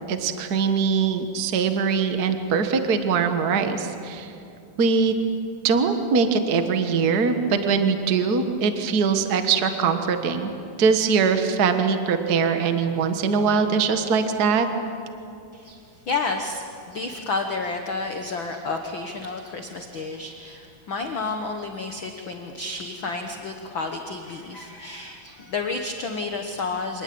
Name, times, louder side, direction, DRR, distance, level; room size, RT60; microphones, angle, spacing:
voice 1, 0.1-4.3 4.8-5.1 5.6-10.5 10.8-14.7, right 5 dB, 75° right, 7 dB, 0.8 m, -22 dB
voice 2, 15.5-27.0, left 3 dB, 60° left, 4 dB, 1.3 m, -31 dB
26.5 x 19.5 x 8.7 m, 2.6 s
omnidirectional pair, 4.0 m